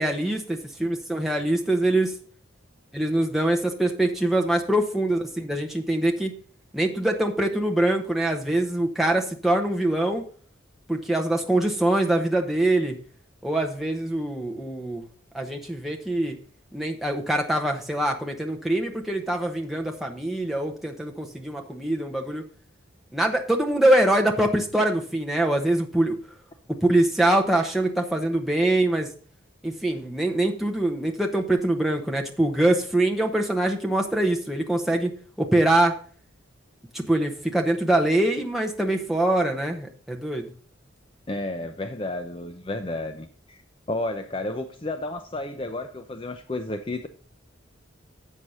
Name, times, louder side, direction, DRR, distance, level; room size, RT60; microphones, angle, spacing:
voice 1, 0.0-2.1 2.9-6.3 6.7-10.2 10.9-13.0 13.4-15.1 15.3-16.4 16.7-22.4 23.1-26.2 26.7-29.1 29.6-35.1 35.4-35.9 36.9-40.5, right 1 dB, ahead, 1 dB, 1.0 m, -24 dB
voice 2, 41.3-43.6 43.9-47.1, left 2 dB, 25° left, 7 dB, 0.5 m, -32 dB
7.5 x 6.4 x 5.5 m, 0.44 s
head